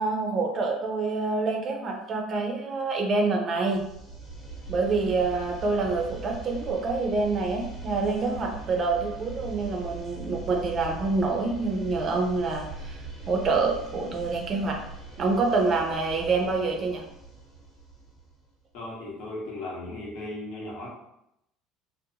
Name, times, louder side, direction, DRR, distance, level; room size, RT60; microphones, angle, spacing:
voice 1, 0.0-3.8 4.7-13.0 13.3-14.8 15.2-17.0, right 3 dB, 35° right, 2 dB, 0.4 m, -26 dB
sound 1, 3.6-18.5, right 3 dB, 25° left, 0.8 m, -41 dB
voice 2, 18.7-20.9, left 2 dB, 70° left, -3 dB, 0.9 m, -36 dB
2.6 x 2.0 x 2.7 m, 0.81 s
cardioid pair, 130°, 0 cm